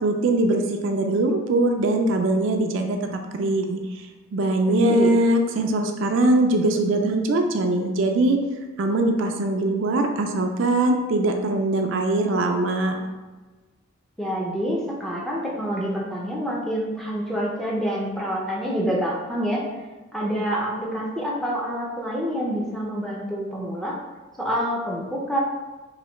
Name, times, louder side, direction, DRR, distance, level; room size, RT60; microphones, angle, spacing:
voice 1, 0.0-3.8 4.3-8.4 8.8-13.1, right 2 dB, 65° right, 4 dB, 0.4 m, -22 dB
voice 2, 4.7-5.1 14.2-19.6 20.1-24.0 24.4-25.4, equal, ahead, -5 dB, 0.4 m, -27 dB
3.2 x 2.7 x 3.0 m, 1.2 s
head